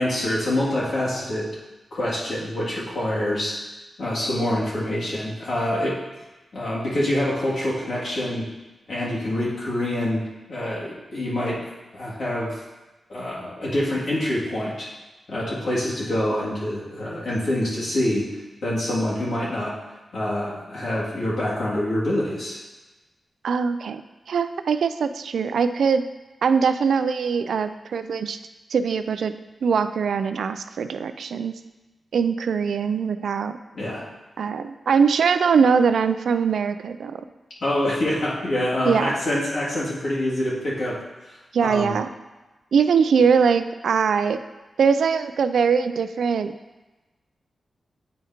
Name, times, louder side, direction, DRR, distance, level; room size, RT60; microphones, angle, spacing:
voice 1, 0.0-1.5 1.9-3.6 4.0-6.0 6.5-8.5 8.9-11.7 11.9-12.6 13.1-14.9 15.3-18.3 18.6-19.7 20.1-22.6 33.7-34.0 37.6-41.0 41.3-41.4 41.6-41.9, left 1 dB, 70° left, -7 dB, 2.2 m, -26 dB
voice 2, 23.4-26.1 26.4-28.4 28.7-31.6 32.1-33.6 34.4-37.2 38.8-39.2 41.5-42.1 42.7-44.4 44.8-46.5, right 6 dB, 85° right, 10 dB, 0.3 m, -22 dB
8.6 x 5.0 x 2.8 m, 1.1 s
cardioid pair, 80°, 0 cm